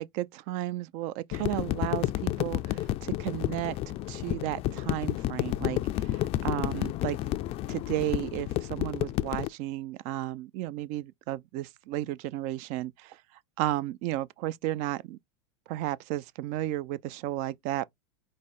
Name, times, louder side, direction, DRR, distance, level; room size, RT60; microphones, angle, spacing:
voice 1, 0.0-7.2 7.7-13.2 13.6-15.2 15.7-17.8, right 15 dB, 50° right, 0.4 m, -33 dB
sound 1, 1.3-9.5, left 15 dB, 40° left, 0.3 m, -31 dB
4.9 x 2.1 x 4.1 m
hypercardioid pair, 110°, 16 cm